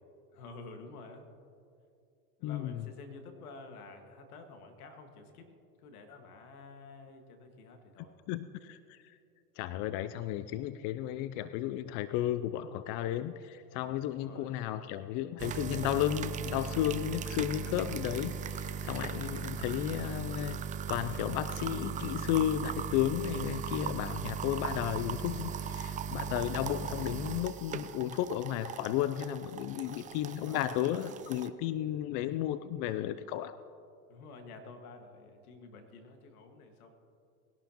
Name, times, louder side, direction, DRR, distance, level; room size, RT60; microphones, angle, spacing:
voice 1, 0.3-1.3 2.4-5.5 5.8-8.2 14.0-14.6 18.8-19.5 29.8-30.7 34.1-37.0, left 3 dB, 75° left, 5 dB, 1.9 m, -50 dB
voice 2, 2.4-2.9 8.3-9.0 9.6-20.6 20.9-33.6, left 12 dB, 45° left, 13 dB, 0.5 m, -33 dB
sound 1, 15.4-31.5, right 8 dB, 20° right, 0.4 m, -38 dB
20.0 x 11.5 x 3.0 m, 2.5 s
hypercardioid pair, 95°, 44 cm